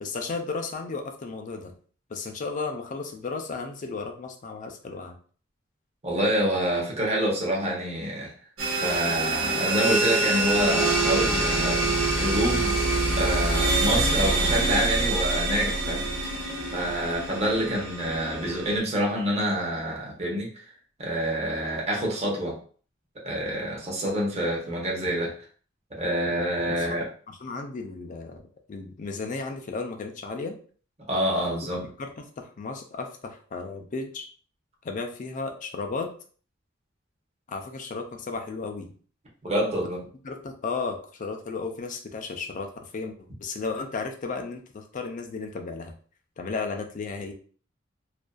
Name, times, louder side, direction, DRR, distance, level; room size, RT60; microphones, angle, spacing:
voice 1, 0.0-1.7 2.1-5.2 26.7-27.0 27.3-30.6 31.6-34.3 34.8-36.1 37.5-38.9 40.2-45.9 46.4-47.3, left 4 dB, 40° left, 4 dB, 0.4 m, -34 dB
voice 2, 6.0-8.3 8.8-11.8 12.2-12.8 13.1-16.0 16.7-20.6 21.0-22.6 23.2-25.3 26.0-27.1 31.1-31.8 39.4-40.0, right 1 dB, 30° right, -3 dB, 0.7 m, -27 dB
sound 1, 8.6-18.8, right 2 dB, 85° right, 0.9 m, -25 dB
2.5 x 2.2 x 2.2 m, 0.43 s
head